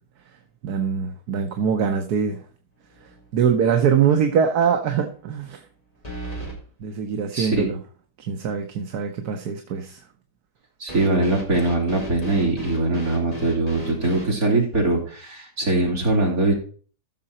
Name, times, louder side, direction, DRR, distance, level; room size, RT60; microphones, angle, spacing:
voice 1, 0.6-2.4 3.3-5.6 6.8-7.8 8.3-10.0, right 7 dB, 80° right, 1.6 m, -23 dB
sound 1, 3.0-3.4 3.7-3.8 6.0-6.6 10.9-14.3, equal, 25° left, 4.1 m, -34 dB
voice 2, 7.3-7.7 10.8-16.5, right 2 dB, 65° right, 4.2 m, -22 dB
15.0 x 6.6 x 4.3 m
omnidirectional pair, 1.6 m